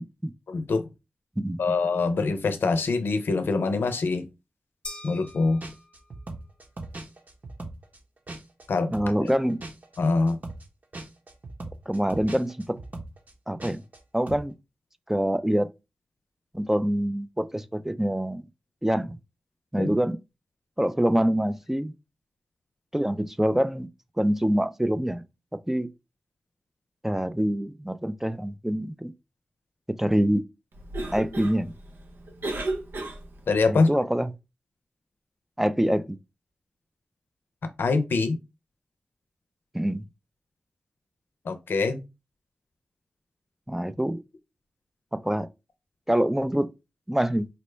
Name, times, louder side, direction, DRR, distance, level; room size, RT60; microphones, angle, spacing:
voice 1, 0.5-0.8 1.6-4.3 5.0-5.6 8.7-8.9 9.2-9.3 10.0-10.4 19.8-19.9 33.5-33.9 37.8-38.4 41.4-42.0, left 3 dB, 80° left, 0.5 m, -24 dB
sound 1, 4.8-6.3, left 2 dB, 30° left, 0.8 m, -43 dB
sound 2, 5.3-5.4 5.6-8.7 8.9-14.0 14.3-14.5, right 2 dB, 50° right, 1.0 m, -39 dB
voice 2, 8.9-9.6 11.9-12.7 13.5-13.8 14.1-14.5 15.1-15.7 16.5-18.5 18.8-19.2 19.7-20.2 20.8-21.9 22.9-23.9 24.2-25.2 25.7-25.9 27.0-29.1 29.9-30.4 31.1-31.7 33.7-34.3 35.6-36.2 39.7-40.0 43.7-44.2 45.1-45.5 46.1-46.7 47.1-47.5, equal, 10° right, 0.4 m, -25 dB
Cough, 30.7-33.6, right 2 dB, 80° right, 0.7 m, -34 dB
4.1 x 2.1 x 3.2 m
cardioid pair, 40°, 4 cm